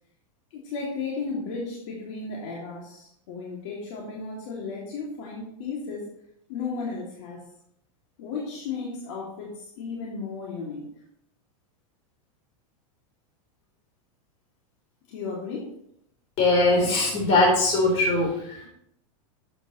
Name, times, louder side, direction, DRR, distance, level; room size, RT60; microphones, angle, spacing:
voice 1, 0.5-6.1 6.5-7.4 8.2-10.8 15.1-15.7, left 4 dB, 60° left, -3 dB, 2.4 m, -34 dB
voice 2, 16.4-18.7, left 2 dB, 35° left, 0 dB, 3.8 m, -21 dB
11.5 x 8.1 x 3.1 m, 0.73 s
supercardioid pair, 160°, 18 cm